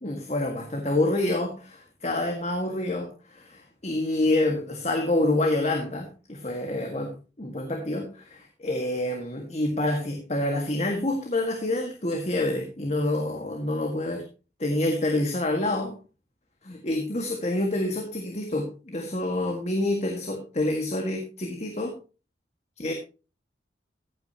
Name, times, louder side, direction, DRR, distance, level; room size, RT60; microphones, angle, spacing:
voice 1, 0.0-14.2 14.6-15.9 16.6-21.9 22.8-22.9, left 1 dB, 40° left, 3 dB, 1.7 m, -27 dB
15.5 x 8.9 x 2.9 m, 0.33 s
head